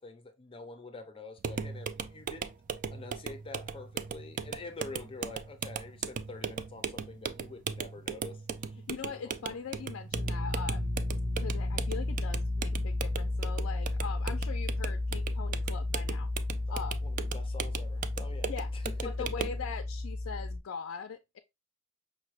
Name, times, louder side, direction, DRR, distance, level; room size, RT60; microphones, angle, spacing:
voice 1, 0.0-2.5 2.9-8.8 9.1-9.3 16.7-19.5, left 3 dB, 25° left, 0.6 m, -46 dB
sound 1, 1.4-19.6, right 6 dB, 40° right, 0.3 m, -38 dB
voice 2, 8.8-10.9 11.3-16.3 16.7-17.1 18.5-18.7 19.0-21.4, left 6 dB, 70° left, 0.4 m, -41 dB
sound 2, 10.1-20.6, left 2 dB, 60° right, 1.4 m, -33 dB
5.5 x 2.2 x 3.0 m
head